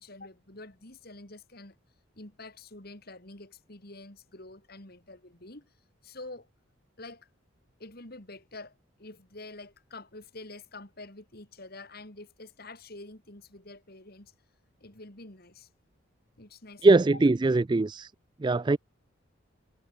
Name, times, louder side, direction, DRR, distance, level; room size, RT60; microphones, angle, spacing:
voice 1, 0.0-1.8 2.1-5.7 6.0-6.5 7.0-7.3 7.8-8.7 9.0-14.3 14.8-15.7 16.4-17.4, left 2 dB, 50° left, 3.1 m, -47 dB
voice 2, 16.8-18.1 18.4-18.8, right 3 dB, 20° right, 0.3 m, -21 dB
head